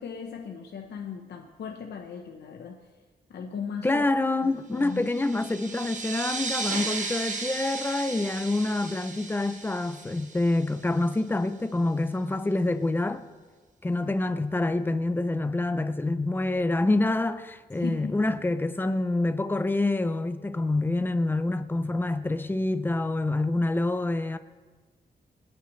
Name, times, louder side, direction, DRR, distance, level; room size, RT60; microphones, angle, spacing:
voice 1, 0.0-2.8 3.3-4.0 4.4-5.0 17.8-18.4, left 6 dB, 85° left, 0.9 m, -38 dB
voice 2, 3.8-13.2 13.8-24.4, left 2 dB, 10° left, 0.5 m, -27 dB
sound 1, 4.9-11.1, right 4 dB, 45° right, 1.1 m, -35 dB
26.0 x 9.2 x 3.2 m
wide cardioid pair, 180°, 17 cm